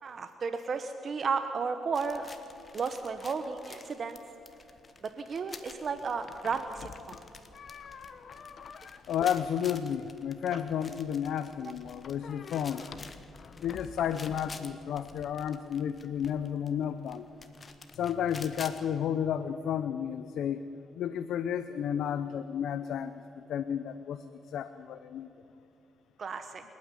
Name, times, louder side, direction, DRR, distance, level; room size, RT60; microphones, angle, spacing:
voice 1, 0.0-2.3 2.7-4.2 5.2-7.2 10.5-10.6 26.2-26.6, right 5 dB, 45° right, 8 dB, 1.0 m, -33 dB
sound 1, 1.9-18.8, left 4 dB, 35° left, 1.5 m, -51 dB
sound 2, 5.8-15.4, left 6 dB, 55° left, 1.1 m, -50 dB
voice 2, 9.1-12.9 13.6-17.3 17.9-20.6 21.0-23.1 23.5-25.3, left 9 dB, 75° left, 11 dB, 0.7 m, -32 dB
27.5 x 9.5 x 9.8 m, 2.7 s
cardioid pair, 90°, 0 cm